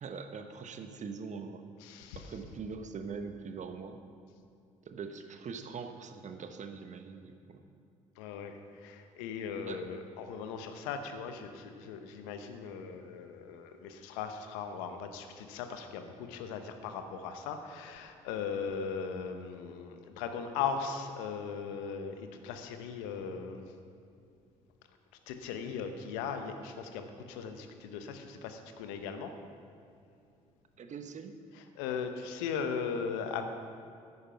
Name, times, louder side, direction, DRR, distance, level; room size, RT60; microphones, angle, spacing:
voice 1, 0.0-1.6 2.1-4.0 4.8-7.6 9.7-9.8 30.8-31.3, right 5 dB, 45° right, 7 dB, 1.0 m, -42 dB
voice 2, 1.8-2.3 8.2-23.7 25.3-29.3 31.5-33.4, left 6 dB, 75° left, 7 dB, 0.8 m, -38 dB
9.8 x 9.4 x 5.7 m, 2.6 s
hypercardioid pair, 50°, 17 cm